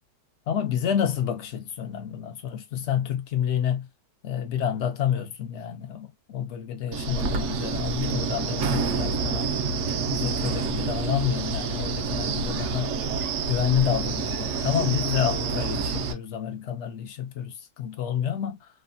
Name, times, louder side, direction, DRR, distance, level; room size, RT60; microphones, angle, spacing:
voice 1, 0.5-3.9 4.2-9.5 10.1-12.9 13.5-18.7, left 9 dB, 70° left, 0.6 m, -29 dB
Wind, 6.9-16.1, right 5 dB, 75° right, 0.7 m, -28 dB
3.2 x 2.1 x 2.5 m
omnidirectional pair, 1.9 m